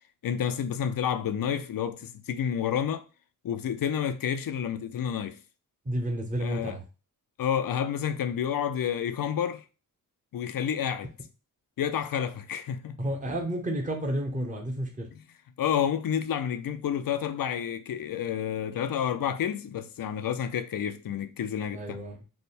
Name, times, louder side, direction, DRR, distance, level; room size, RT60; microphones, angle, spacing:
voice 1, 0.2-3.0 3.4-5.4 6.4-6.8 7.4-9.6 10.3-11.1 11.8-13.0 15.1-15.2 15.6-22.0, left 8 dB, 75° left, 0.5 m, -30 dB
voice 2, 5.9-6.8 13.0-15.1 21.7-22.2, right 1 dB, 20° right, 0.8 m, -31 dB
3.4 x 2.1 x 4.2 m
wide cardioid pair, 100°, 34 cm